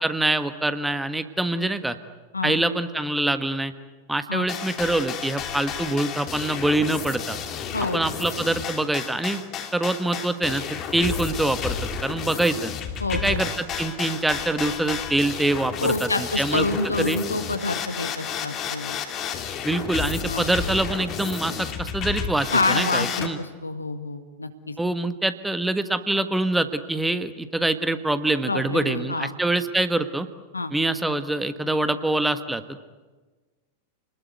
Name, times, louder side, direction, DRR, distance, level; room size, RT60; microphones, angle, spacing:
voice 1, 0.0-2.0 2.4-3.7 4.1-7.4 7.9-9.4 9.7-11.8 12.0-12.7 13.2-16.7 17.0-17.2 19.6-23.4 24.8-30.3 30.7-32.8, right 2 dB, 5° right, 10 dB, 1.5 m, -25 dB
sound 1, 4.5-23.3, left 7 dB, 30° left, 2.8 m, -32 dB
voice 2, 7.7-8.0 13.0-13.4 15.8-19.0 20.3-20.4 22.5-24.5 28.5-29.3 30.5-30.7, left 2 dB, 80° left, 9 dB, 1.9 m, -27 dB
29.5 x 20.5 x 9.5 m, 1.3 s
figure-of-eight pair, 90°, 0 cm